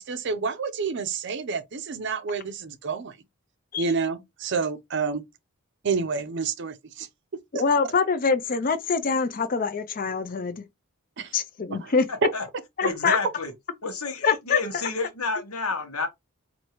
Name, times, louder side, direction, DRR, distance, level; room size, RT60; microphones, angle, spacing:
voice 1, 0.0-3.1 3.8-5.2 5.8-7.1 11.2-11.3 11.7-11.9 12.2-12.3 12.8-12.9, right 5 dB, 55° right, 0.5 m, -28 dB
voice 2, 7.6-10.6 11.3-12.1 12.8-13.2 14.2-14.6, left 5 dB, 40° left, 0.5 m, -24 dB
voice 3, 12.1-12.5 12.8-13.5 13.8-16.1, left 3 dB, 85° left, 1.1 m, -30 dB
4.5 x 2.6 x 2.9 m
head